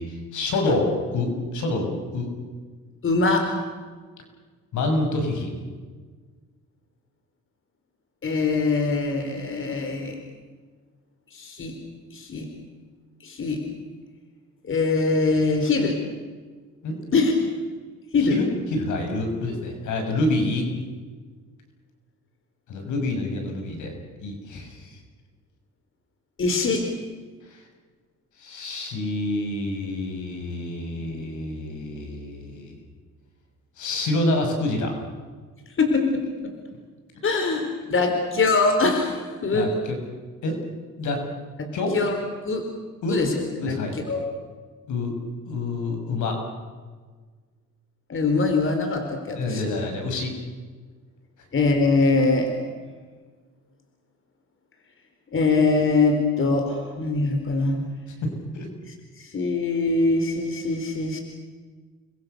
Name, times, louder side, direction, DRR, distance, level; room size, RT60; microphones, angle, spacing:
voice 1, 0.0-2.3 4.7-5.5 16.8-17.0 18.2-20.7 22.7-23.9 24.2-25.0 27.4-27.7 28.4-32.8 33.8-34.9 39.5-40.0 40.4-40.6 41.0-41.3 41.7-42.0 43.0-43.2 43.6-43.9 44.9-45.2 45.4-46.4 49.3-50.3 58.2-58.7, left 2 dB, 75° left, 4 dB, 6.6 m, -27 dB
voice 2, 3.0-3.5 8.2-10.2 11.3-11.8 12.1-12.5 13.2-13.6 14.6-16.0 17.1-17.3 18.1-18.4 26.4-26.8 35.8-36.5 37.2-39.7 41.6-41.7 41.9-42.1 42.4-42.7 43.1-43.7 44.1-44.2 48.1-49.7 51.5-52.5 55.3-57.8 59.2-61.2, left 3 dB, 45° left, 5 dB, 4.3 m, -23 dB
29.5 x 22.5 x 6.9 m, 1.5 s
cardioid pair, 90°, 30 cm